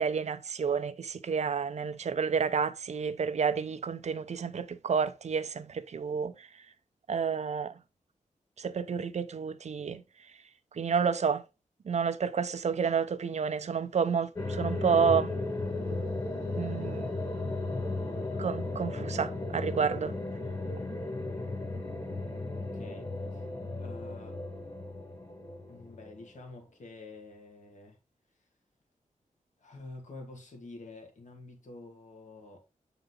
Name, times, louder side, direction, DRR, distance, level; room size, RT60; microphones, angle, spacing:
voice 1, 0.0-6.6 7.1-7.8 8.6-10.0 10.7-11.4 11.8-15.3 16.6-17.2 18.4-20.1, right 6 dB, 55° right, 0.6 m, -30 dB
sound 1, 14.4-26.4, left 2 dB, 30° left, 1.7 m, -35 dB
voice 2, 22.3-23.5 23.7-24.4 25.7-28.0 29.6-32.6, left 2 dB, 65° left, 1.8 m, -48 dB
8.0 x 3.9 x 3.8 m
wide cardioid pair, 150°, 14 cm